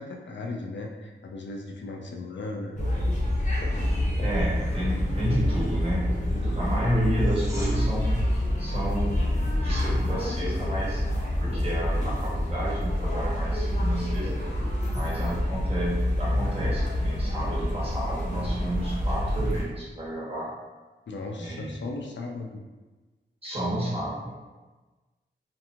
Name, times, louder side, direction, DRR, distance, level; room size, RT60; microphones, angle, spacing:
voice 1, 0.0-2.8 21.1-22.6, left 2 dB, 80° left, 2 dB, 0.4 m, -36 dB
sound 1, 2.8-19.6, left 1 dB, 40° left, 0.7 m, -27 dB
voice 2, 4.2-11.0 11.4-14.3 14.9-20.5 21.4-21.8 23.4-24.3, right 1 dB, 30° right, -7 dB, 1.1 m, -31 dB
sound 2, 7.1-7.7 19.1-19.2, equal, 15° right, 1.1 m, -42 dB
2.8 x 2.5 x 2.5 m, 1.2 s
wide cardioid pair, 100°, 19 cm